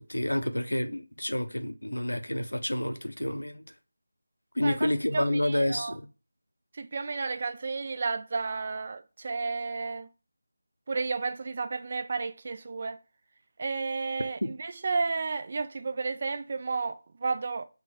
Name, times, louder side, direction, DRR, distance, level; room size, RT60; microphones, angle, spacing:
voice 1, 0.0-3.6 4.6-6.1 14.4-14.5, left 1 dB, 85° left, 0.5 m, -29 dB
voice 2, 5.1-6.0 6.7-10.1 10.9-13.0 13.6-17.7, right 4 dB, 40° right, 0.3 m, -32 dB
3.8 x 2.1 x 4.2 m
figure-of-eight pair, 165°, 0 cm